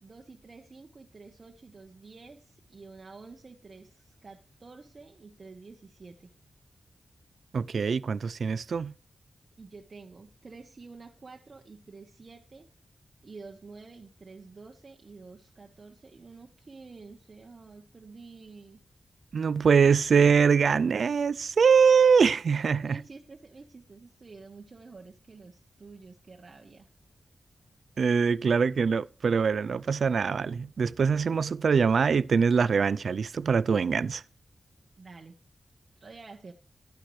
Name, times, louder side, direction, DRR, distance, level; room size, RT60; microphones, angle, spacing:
voice 1, 0.0-6.3 9.6-12.7 13.2-18.8 22.7-26.9 35.0-35.4 36.0-36.5, right 4 dB, 45° right, 1.1 m, -49 dB
voice 2, 7.5-8.9 19.3-23.0 28.0-34.2, right 6 dB, 75° right, 0.4 m, -23 dB
12.0 x 10.0 x 3.2 m
wide cardioid pair, 110°, 0 cm